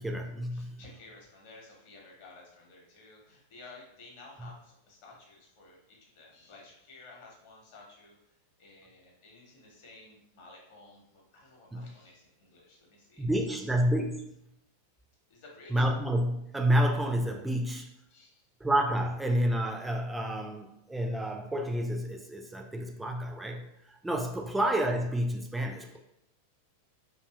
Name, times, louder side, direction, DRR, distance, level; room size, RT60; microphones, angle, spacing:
voice 1, 0.0-0.8 11.7-11.9 13.2-14.3 15.7-17.9 18.6-26.0, right 1 dB, 5° right, 2 dB, 0.3 m, -29 dB
voice 2, 0.5-13.3 15.3-15.9 18.1-18.5 25.9-26.0, left 3 dB, 50° left, -2 dB, 0.8 m, -54 dB
2.6 x 2.4 x 2.3 m, 0.81 s
figure-of-eight pair, 90°, 0 cm